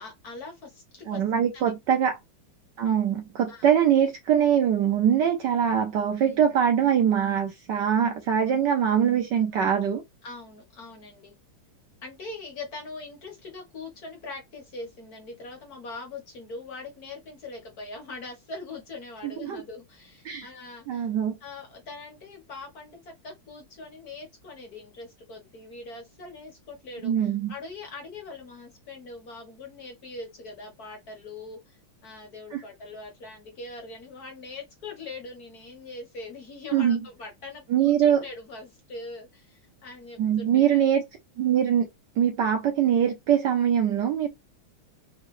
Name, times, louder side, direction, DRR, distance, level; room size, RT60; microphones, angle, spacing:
voice 1, 0.0-1.2 1.5-1.7 3.5-3.7 6.3-6.6 10.2-11.3 12.0-21.1 21.4-40.8, left 3 dB, 50° left, 1.4 m, -42 dB
voice 2, 1.1-2.2 2.8-10.0 19.2-19.6 20.2-20.5 20.9-21.3 27.0-27.5 32.5-32.6 36.7-37.0 37.7-38.2 40.2-41.0 41.4-41.9 42.2-44.3, right 9 dB, 70° right, 1.1 m, -23 dB
3.7 x 3.1 x 3.1 m
omnidirectional pair, 2.4 m